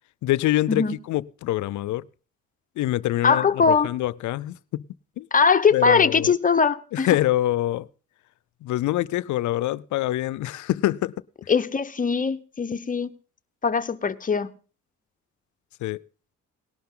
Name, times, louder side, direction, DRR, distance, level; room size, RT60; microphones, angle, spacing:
voice 1, 0.2-2.1 2.8-4.8 5.2-5.3 5.7-6.3 6.9-7.9 8.6-11.1 11.4-11.5 15.8-16.0, left 15 dB, 75° left, 0.5 m, -25 dB
voice 2, 3.2-3.9 5.3-7.1 11.5-13.1 13.6-14.5, left 5 dB, 25° left, 0.9 m, -21 dB
18.5 x 11.5 x 3.8 m
cardioid pair, 90°, 30 cm